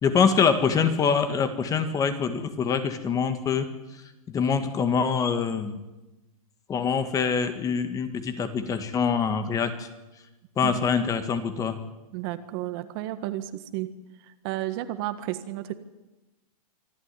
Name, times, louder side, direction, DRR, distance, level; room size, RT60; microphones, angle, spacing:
voice 1, 0.0-3.7 4.3-5.8 6.7-9.9 10.6-11.8, left 6 dB, 15° left, 9 dB, 1.7 m, -24 dB
voice 2, 12.1-13.9 14.4-15.7, right 15 dB, 40° right, 10 dB, 1.6 m, -32 dB
25.0 x 13.0 x 9.9 m, 1.1 s
hypercardioid pair, 150°, 20 cm